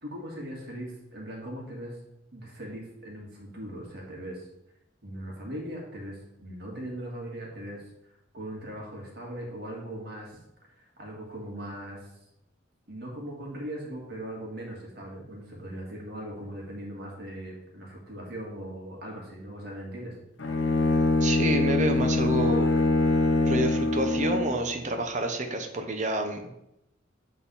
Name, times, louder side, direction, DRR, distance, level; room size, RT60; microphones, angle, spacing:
voice 1, 0.0-2.0 2.3-4.5 5.0-7.8 8.3-10.4 10.8-12.0 12.9-20.2, right 1 dB, 55° right, -2 dB, 1.9 m, -39 dB
Bowed string instrument, 20.4-24.6, left 2 dB, 75° left, 0.9 m, -24 dB
voice 2, 21.2-22.7 23.4-26.5, right 1 dB, 40° right, 4 dB, 0.8 m, -29 dB
7.8 x 3.9 x 4.1 m, 0.83 s
head